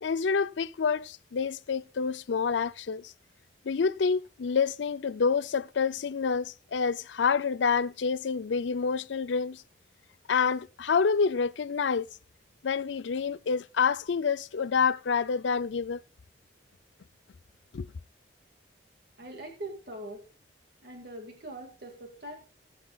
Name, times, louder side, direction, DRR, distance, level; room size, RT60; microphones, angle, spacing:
voice 1, 0.0-3.1 3.7-9.6 10.3-12.1 12.6-16.0 17.7-17.9, left 5 dB, 75° left, 0.5 m, -28 dB
voice 2, 19.2-20.3 20.8-22.3, right 1 dB, 60° right, 2.1 m, -42 dB
19.5 x 8.2 x 2.4 m
head